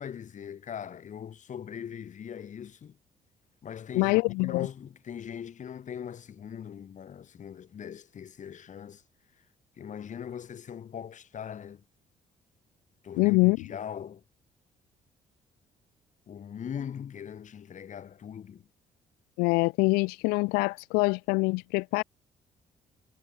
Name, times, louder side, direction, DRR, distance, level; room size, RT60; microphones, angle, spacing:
voice 1, 0.0-3.0 3.6-9.0 9.8-11.8 13.0-14.2 16.3-18.7, left 8 dB, 55° left, 2.9 m, -40 dB
voice 2, 3.9-4.7 13.2-13.6 19.4-22.0, left 28 dB, 85° left, 1.6 m, -24 dB
supercardioid pair, 60°, 15 cm